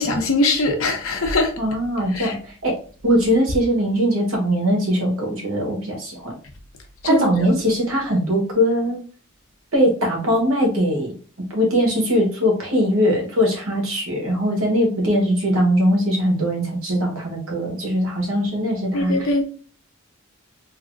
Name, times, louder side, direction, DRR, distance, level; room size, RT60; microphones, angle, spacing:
voice 1, 0.0-1.5 2.1-2.4 7.0-7.5 18.9-19.4, left 2 dB, 85° left, 0.8 m, -21 dB
voice 2, 1.6-2.7 3.0-6.3 7.0-9.0 9.7-11.1 11.5-19.3, equal, 85° right, 1.2 m, -21 dB
3.4 x 2.8 x 2.5 m
head